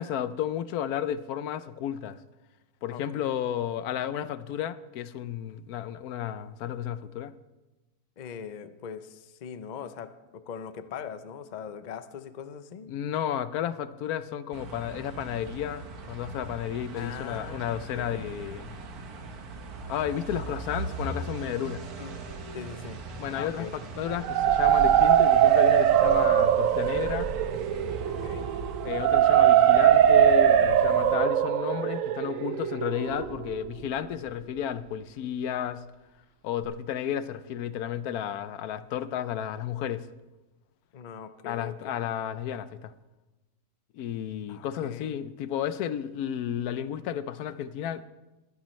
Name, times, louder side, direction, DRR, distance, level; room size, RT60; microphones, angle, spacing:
voice 1, 0.0-2.2 2.8-7.3 12.9-18.7 19.9-21.8 23.2-27.3 28.8-35.8 36.4-40.1 41.4-42.9 43.9-48.0, left 10 dB, 85° left, 1.1 m, -32 dB
voice 2, 2.9-3.3 8.2-12.9 16.9-18.3 22.0-22.2 22.5-23.0 23.3-23.7 28.1-28.5 40.9-41.9 44.5-44.7 44.9-45.1, left 7 dB, 50° left, 0.5 m, -41 dB
sound 1, 14.5-31.2, right 3 dB, 85° right, 1.6 m, -39 dB
sound 2, 24.1-33.9, right 10 dB, 70° right, 0.9 m, -21 dB
21.5 x 10.5 x 3.2 m
omnidirectional pair, 1.5 m